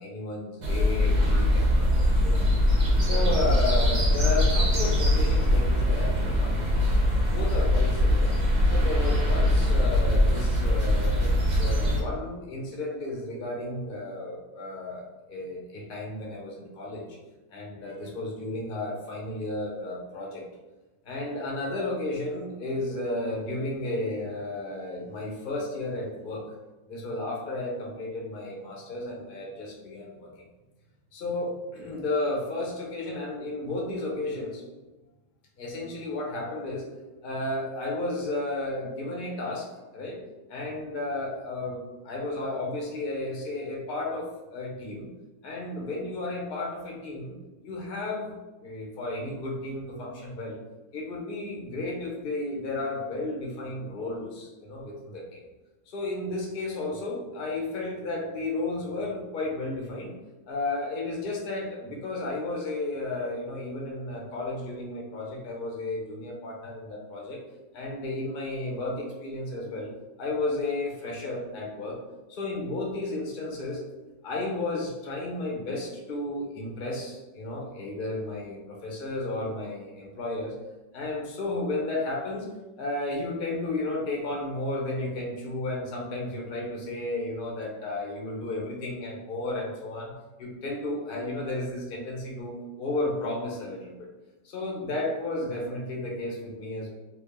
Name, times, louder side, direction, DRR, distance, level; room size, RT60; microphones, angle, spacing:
voice 1, 0.0-2.5 3.0-8.3 8.7-11.3 11.6-17.1 17.5-20.4 21.0-26.4 26.9-30.3 31.1-34.6 35.6-36.9 37.2-39.7 39.9-40.2 40.5-45.1 45.4-47.4 47.6-48.3 48.6-50.6 50.9-55.4 55.9-60.1 60.5-67.4 67.7-69.9 70.2-72.0 72.3-73.8 74.2-80.5 80.9-82.5 82.8-94.1 94.4-96.9, left 2 dB, 45° left, -2 dB, 0.8 m, -33 dB
sound 1, 0.6-12.0, left 1 dB, 45° right, 0.6 m, -22 dB
3.4 x 2.4 x 3.5 m, 1.1 s
omnidirectional pair, 1.7 m